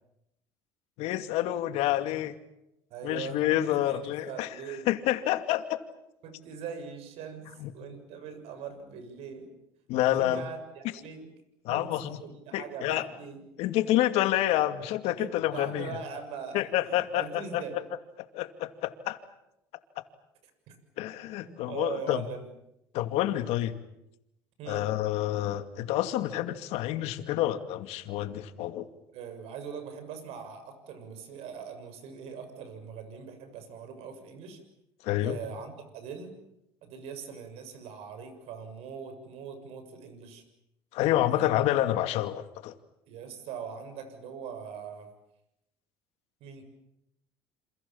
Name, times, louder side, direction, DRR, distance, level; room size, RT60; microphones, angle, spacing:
voice 1, 1.0-2.4 3.0-4.5 4.9-5.8 7.6-7.7 9.9-10.4 11.6-12.2 12.5-13.1 13.6-16.0 16.5-17.8 18.2-19.2 21.0-22.2 22.9-23.8 24.7-28.9 35.0-35.4 40.9-42.7, left 13 dB, 70° left, 8 dB, 2.5 m, -28 dB
voice 2, 2.9-4.9 6.2-7.5 7.7-9.5 10.2-11.3 11.7-13.4 15.2-17.8 20.7-20.8 21.4-22.5 24.6-24.8 29.1-34.6 35.2-36.4 36.8-40.4 41.3-41.5 43.1-45.1 46.4-46.6, right 6 dB, 70° right, 9 dB, 6.9 m, -41 dB
28.5 x 27.5 x 7.4 m, 0.85 s
supercardioid pair, 105°, 11 cm